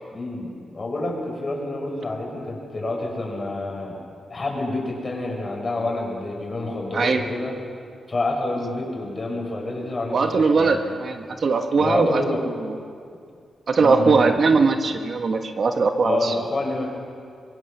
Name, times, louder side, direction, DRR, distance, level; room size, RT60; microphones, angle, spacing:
voice 1, 0.1-4.0 4.3-7.5 8.1-10.8 11.8-12.4 13.8-14.4 16.0-16.9, left 2 dB, 30° left, 0 dB, 6.4 m, -28 dB
voice 2, 6.9-7.2 10.1-12.8 13.7-16.3, right 4 dB, 55° right, 5 dB, 1.4 m, -20 dB
25.5 x 23.0 x 6.9 m, 2.2 s
wide cardioid pair, 110°, 0 cm